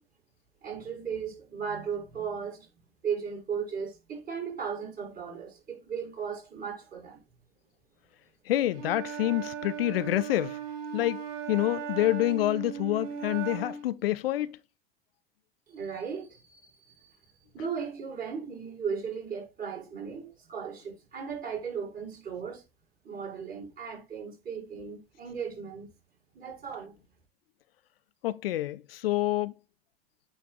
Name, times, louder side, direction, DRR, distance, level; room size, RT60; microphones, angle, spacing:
voice 1, 0.6-2.7 3.0-7.2 15.7-17.2 17.5-22.6 23.0-25.9 26.3-26.9, right 6 dB, 30° right, 5.2 m, -36 dB
voice 2, 8.5-10.6 10.9-11.2 11.5-14.6 28.2-29.5, left 15 dB, 70° left, 0.6 m, -27 dB
Wind instrument woodwind instrument, 8.7-13.9, right 7 dB, 55° right, 3.2 m, -37 dB
8.8 x 3.4 x 4.7 m
figure-of-eight pair, 75°, 30 cm